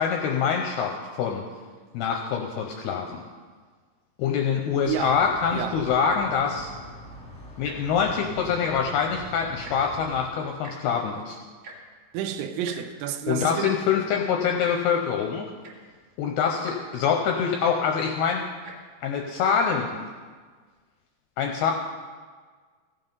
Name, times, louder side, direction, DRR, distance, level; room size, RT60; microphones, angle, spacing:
voice 1, 0.0-1.4 1.9-3.2 4.2-6.7 7.6-11.4 13.3-15.5 16.2-18.4 19.0-20.0 21.4-21.7, left 6 dB, 80° left, 2.3 m, -25 dB
sound 1, 4.8-10.2, equal, 5° left, 0.8 m, -43 dB
voice 2, 4.9-5.3 5.5-5.8 12.1-13.8, right 9 dB, 85° right, 3.1 m, -30 dB
Tick-tock, 7.5-7.9 8.6-8.8 9.1-9.2 9.5-10.0 10.6-10.8 11.6-11.8 12.6-12.8 13.6-13.7 14.6-14.8 15.3-15.4 15.6-15.9 16.6-16.8 17.6-17.8 18.5-18.7 19.5-19.6, right 4 dB, 40° right, 2.2 m, -43 dB
16.0 x 7.7 x 5.4 m
omnidirectional pair, 5.4 m